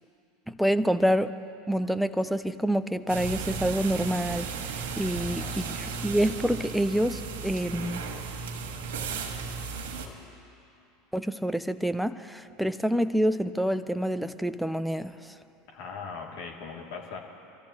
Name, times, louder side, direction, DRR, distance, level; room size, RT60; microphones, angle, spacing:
voice 1, 0.5-1.3 1.7-8.0 11.1-15.3, equal, ahead, 12 dB, 0.6 m, -27 dB
sound 1, 3.1-10.1, right 5 dB, 75° right, 1.6 m, -35 dB
voice 2, 5.2-5.8 15.7-17.2, left 5 dB, 65° left, -1 dB, 2.5 m, -40 dB
27.0 x 13.5 x 2.9 m, 2.8 s
hypercardioid pair, 85°, 0 cm